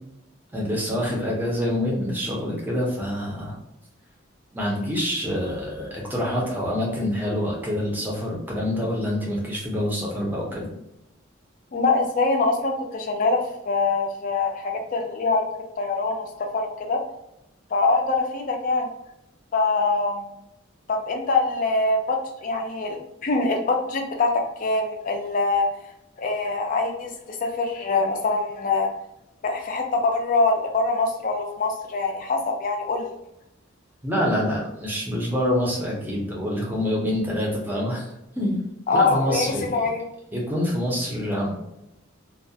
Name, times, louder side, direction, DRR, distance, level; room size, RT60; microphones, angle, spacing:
voice 1, 0.5-3.6 4.5-10.7 34.0-38.1 38.4-38.6 38.9-39.9 40.3-41.5, left 1 dB, 10° right, -3 dB, 0.6 m, -26 dB
voice 2, 11.7-15.5 15.8-17.0 17.7-18.9 19.5-20.3 20.9-23.0 23.2-25.7 26.2-28.9 29.4-33.1 38.9-40.0, left 3 dB, 40° left, 3 dB, 0.4 m, -24 dB
2.3 x 2.1 x 2.7 m, 0.85 s
head